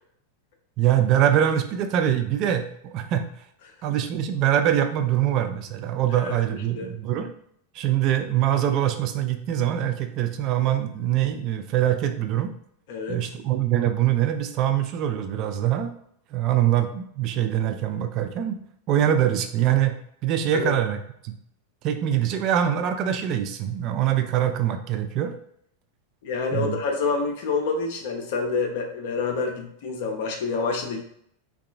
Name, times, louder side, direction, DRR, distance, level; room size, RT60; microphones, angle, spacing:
voice 1, 0.8-3.3 3.8-7.3 7.7-12.5 13.1-15.9 16.3-18.6 18.9-20.0 20.2-21.3 21.8-25.3 26.5-26.8, right 11 dB, 40° right, 7 dB, 0.3 m, -23 dB
voice 2, 26.2-31.0, left 4 dB, 50° left, 2 dB, 0.5 m, -27 dB
3.7 x 2.3 x 2.4 m, 0.70 s
figure-of-eight pair, 90°, 0 cm